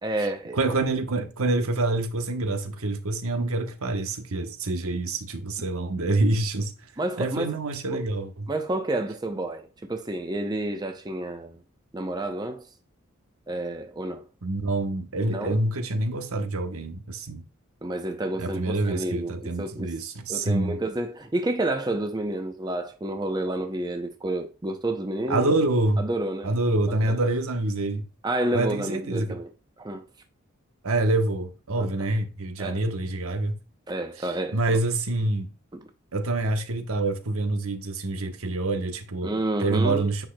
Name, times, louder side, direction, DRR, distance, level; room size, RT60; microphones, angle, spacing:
voice 1, 0.0-0.6 7.0-7.5 7.9-8.0 8.5-11.6 11.9-12.7 13.5-14.2 15.3-15.6 17.8-19.9 20.3-25.5 26.0-26.6 26.9-27.2 28.2-29.5 29.8-30.0 31.8-31.9 32.6-32.8 33.9-34.8 35.7-35.8 39.2-40.1, right 1 dB, 20° right, 0.5 m, -30 dB
voice 2, 0.5-6.7 7.2-8.5 14.4-17.4 18.4-20.8 25.3-26.1 26.4-28.0 28.5-29.4 30.8-33.5 34.2-35.5 36.1-39.3 39.6-40.3, right 2 dB, 70° right, 1.0 m, -26 dB
9.0 x 6.0 x 2.2 m
head